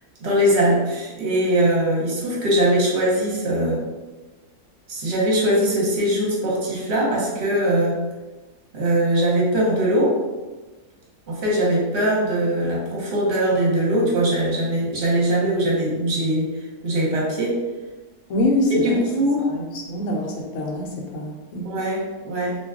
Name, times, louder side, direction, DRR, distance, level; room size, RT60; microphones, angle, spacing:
voice 1, 0.2-3.8 4.9-8.0 8.7-10.2 11.3-16.6 16.8-17.6 18.8-19.5 21.6-22.6, right 1 dB, 50° right, -5 dB, 1.0 m, -21 dB
voice 2, 18.3-19.0 19.4-21.7, left 1 dB, 65° left, 0 dB, 0.9 m, -25 dB
2.6 x 2.2 x 3.5 m, 1.2 s
omnidirectional pair, 1.6 m